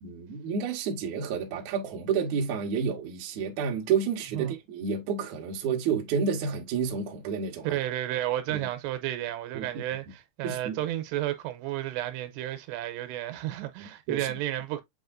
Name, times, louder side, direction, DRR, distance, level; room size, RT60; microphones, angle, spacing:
voice 1, 0.0-7.8 8.5-8.7 9.5-9.7 10.4-10.8 14.1-14.3, right 6 dB, 75° right, 1.8 m, -30 dB
voice 2, 7.6-14.8, right 13 dB, 90° right, 2.8 m, -32 dB
7.6 x 2.7 x 2.5 m
omnidirectional pair, 4.8 m